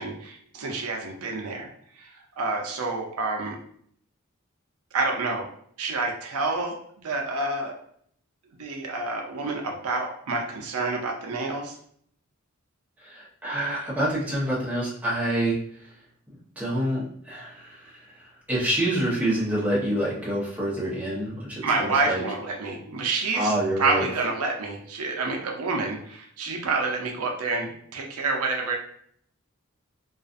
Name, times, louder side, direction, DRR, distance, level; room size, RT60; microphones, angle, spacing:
voice 1, 0.0-1.7 1.9-2.1 2.4-3.6 4.9-5.5 5.8-6.7 7.0-7.7 8.6-11.8 21.6-28.8, right 3 dB, 85° right, 1 dB, 0.5 m, -28 dB
voice 2, 13.0-15.6 16.6-22.2 23.3-24.0, right 1 dB, 5° right, -9 dB, 0.8 m, -27 dB
2.4 x 2.4 x 2.5 m, 0.63 s
head